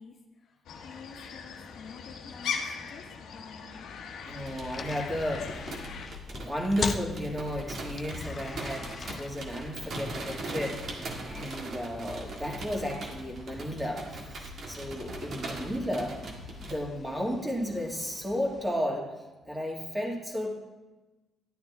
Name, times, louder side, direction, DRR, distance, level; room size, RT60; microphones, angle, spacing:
voice 1, 0.0-3.9 17.0-17.1, left 5 dB, 60° left, 2 dB, 1.4 m, -49 dB
sound 1, 0.7-6.1, left 6 dB, 75° left, 1.2 m, -39 dB
sound 2, 3.7-18.7, left 4 dB, 40° left, 0.7 m, -43 dB
voice 2, 4.2-5.7 6.3-16.3 16.6-19.1 19.5-20.5, equal, 15° right, 0 dB, 2.2 m, -33 dB
sound 3, 4.3-16.7, right 1 dB, 55° right, 1.8 m, -40 dB
11.5 x 9.3 x 3.6 m, 1.1 s
cardioid pair, 105°, 0 cm